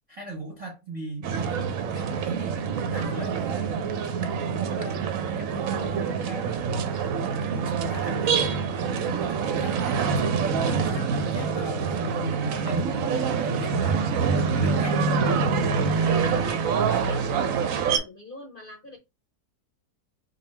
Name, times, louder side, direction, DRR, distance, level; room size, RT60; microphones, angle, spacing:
voice 1, 0.1-6.6 7.4-14.0 14.5-15.2, right 3 dB, 30° right, 0.7 m, -36 dB
sound 1, 1.2-18.0, right 5 dB, 70° right, 0.8 m, -26 dB
voice 2, 15.4-19.0, left 2 dB, 50° left, 0.7 m, -42 dB
2.7 x 2.6 x 4.3 m
omnidirectional pair, 1.8 m